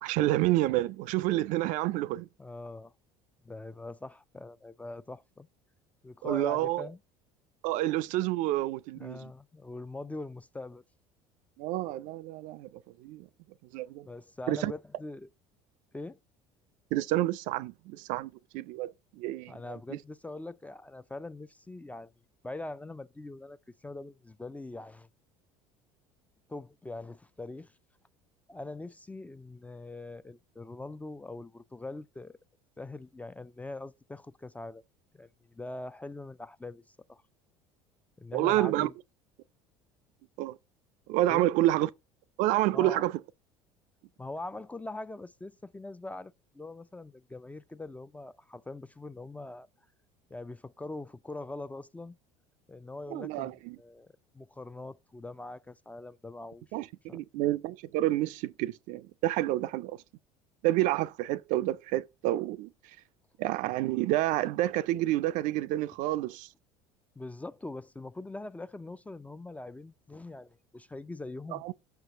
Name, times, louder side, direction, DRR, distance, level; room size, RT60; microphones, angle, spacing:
voice 1, 0.0-2.3 6.2-6.9 7.6-9.3 11.6-13.3 13.7-14.1 14.5-14.7 16.9-19.5 19.9-20.0 38.3-38.9 40.4-40.6 41.1-41.9 42.4-43.1 53.1-53.8 56.7-60.0 60.6-62.7 63.4-66.5 71.5-71.7, right 16 dB, 60° right, 0.4 m, -29 dB
voice 2, 2.4-2.9 3.4-5.5 6.0-7.0 8.9-10.8 14.0-15.3 15.9-16.2 19.5-22.1 22.4-23.6 23.8-25.1 26.5-27.7 28.5-32.4 32.8-34.8 35.1-37.2 38.2-38.9 41.3-41.5 42.7-43.0 44.2-49.7 50.3-52.2 52.7-56.6 57.1-57.5 67.2-71.6, left 2 dB, 10° left, 0.3 m, -42 dB
6.2 x 4.5 x 5.7 m
hypercardioid pair, 65°, 15 cm